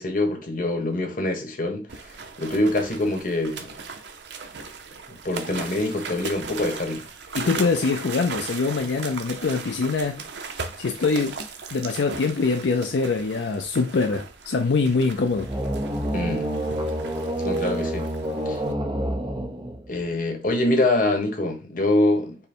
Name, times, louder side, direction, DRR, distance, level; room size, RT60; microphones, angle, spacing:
voice 1, 0.0-3.7 5.1-7.1 16.1-16.5 17.4-18.1 18.4-18.6 19.9-22.4, left 2 dB, 50° left, 1.1 m, -25 dB
sound 1, 1.9-18.7, right 4 dB, 75° right, 0.7 m, -38 dB
voice 2, 7.3-10.2 10.8-11.4 11.7-15.5, left 4 dB, 75° left, 0.5 m, -24 dB
sound 2, 15.3-20.1, right 1 dB, 30° right, 0.7 m, -28 dB
5.4 x 2.1 x 4.4 m
head